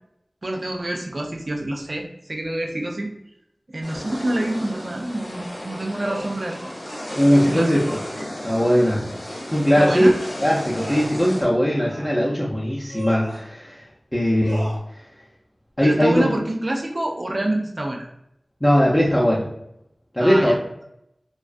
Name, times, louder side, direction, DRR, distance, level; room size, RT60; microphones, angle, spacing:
voice 1, 0.4-3.1 3.7-6.6 7.2-8.0 9.8-10.2 15.8-18.1 20.2-20.6, right 1 dB, 60° right, 1 dB, 0.3 m, -27 dB
sound 1, 3.8-11.4, left 1 dB, 60° left, 0.6 m, -34 dB
sound 2, 4.4-4.7 6.0-7.2 8.1-8.4 9.7-10.3 10.7-11.2 11.8-12.3 12.9-13.5 14.4-14.8, right 1 dB, 75° right, 0.7 m, -36 dB
voice 2, 7.2-8.0 8.4-9.0 9.5-10.1 10.4-13.8 14.1-14.7 15.8-16.3 18.6-19.5 20.1-20.5, equal, 20° left, -6 dB, 0.5 m, -19 dB
2.4 x 2.2 x 2.4 m, 0.80 s
wide cardioid pair, 45°, 0 cm